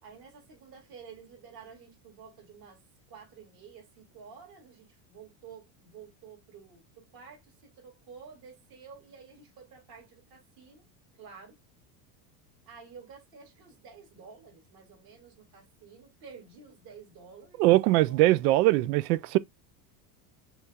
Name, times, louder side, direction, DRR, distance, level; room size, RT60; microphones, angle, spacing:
voice 1, 0.0-2.8 3.1-10.9 11.2-11.6 12.7-17.6 17.9-18.3, right 6 dB, 45° right, 2.7 m, -51 dB
voice 2, 17.6-19.4, right 17 dB, 80° right, 0.6 m, -22 dB
6.1 x 3.2 x 2.2 m
supercardioid pair, 135°, 48 cm